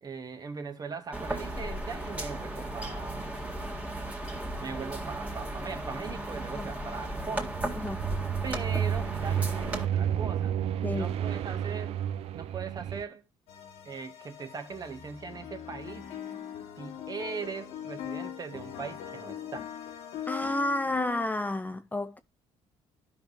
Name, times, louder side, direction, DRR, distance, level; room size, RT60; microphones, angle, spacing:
voice 1, 0.0-3.3 4.6-7.6 8.4-10.6 10.9-13.2 13.8-16.1 16.8-19.7, right 5 dB, 35° right, 1.4 m, -40 dB
sound 1, 1.1-9.9, right 1 dB, 10° right, 2.0 m, -36 dB
sound 2, 7.4-13.0, right 9 dB, 70° right, 0.6 m, -31 dB
voice 2, 10.8-11.1 20.3-22.2, left 1 dB, 15° left, 0.5 m, -31 dB
sound 3, 13.5-21.2, left 9 dB, 80° left, 1.4 m, -41 dB
13.0 x 5.4 x 2.5 m
cardioid pair, 90°, 11 cm